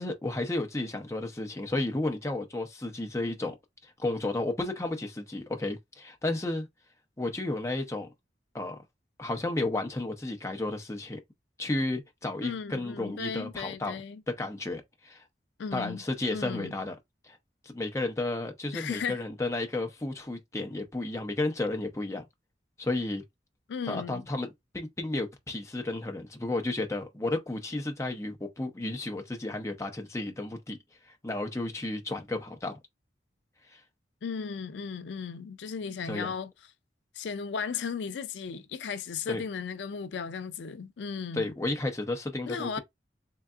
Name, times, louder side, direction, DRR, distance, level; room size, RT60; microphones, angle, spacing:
voice 1, 0.0-3.5 3.8-6.7 7.2-8.1 8.5-8.8 9.2-11.2 11.6-14.0 14.3-15.2 15.7-17.0 17.2-17.4 17.6-22.2 22.8-23.2 23.9-30.8 31.0-32.8 33.7-33.8 36.1-36.3 39.3-39.4 41.3-42.8, left 2 dB, 15° left, 0.6 m, -32 dB
voice 2, 12.4-14.2 15.6-16.0 16.3-16.8 18.7-19.2 23.7-24.3 34.2-36.5 37.2-41.5 42.5-42.8, left 6 dB, 80° left, 0.4 m, -36 dB
3.7 x 3.3 x 2.4 m
head